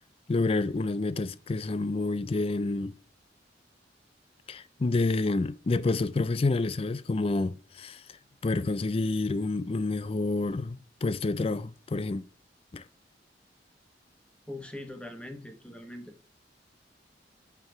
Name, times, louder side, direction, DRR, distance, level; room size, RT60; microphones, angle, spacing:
voice 1, 0.3-3.0 4.5-8.0 8.4-12.2 12.7-12.8, left 3 dB, 35° left, 0.4 m, -28 dB
voice 2, 14.5-16.1, left 1 dB, 5° left, 1.2 m, -41 dB
9.5 x 4.7 x 5.8 m
head